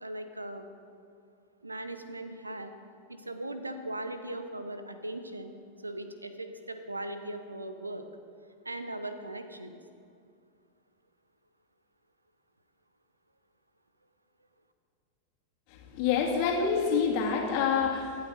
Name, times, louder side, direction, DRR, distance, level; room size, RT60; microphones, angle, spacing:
voice 1, 0.0-0.7 1.6-2.7 3.1-5.5 5.8-8.1 8.6-9.8, right 1 dB, 80° right, 9 dB, 0.8 m, -39 dB
voice 2, 15.9-18.2, left 6 dB, 45° left, 0 dB, 2.1 m, -27 dB
24.0 x 8.9 x 4.1 m, 2.4 s
figure-of-eight pair, 90°, 0 cm